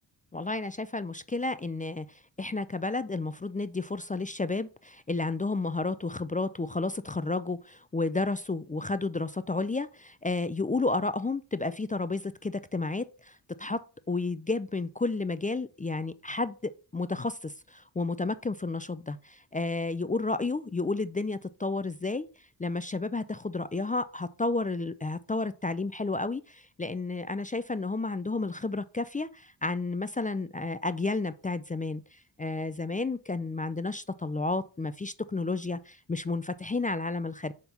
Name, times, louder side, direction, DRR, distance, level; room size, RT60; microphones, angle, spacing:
voice 1, 0.3-2.1 2.4-13.8 14.1-22.3 22.6-32.0 32.4-37.5, left 3 dB, 20° left, 0.4 m, -31 dB
5.9 x 3.7 x 5.4 m
cardioid pair, 55°, 45 cm